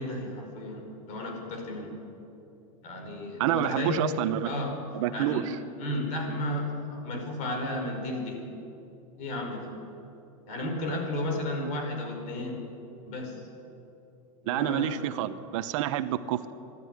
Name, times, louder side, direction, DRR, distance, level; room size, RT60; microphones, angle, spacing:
voice 1, 0.0-2.0 2.8-4.1 4.4-4.7 5.1-5.5 5.8-8.5 9.2-9.7 10.5-12.7 13.1-13.4 14.4-15.0, left 1 dB, 45° left, 3 dB, 5.1 m, -33 dB
voice 2, 3.4-4.5 4.9-5.6 14.5-16.5, right 12 dB, 65° right, 12 dB, 1.0 m, -28 dB
24.0 x 12.5 x 9.5 m, 2.8 s
supercardioid pair, 140°, 18 cm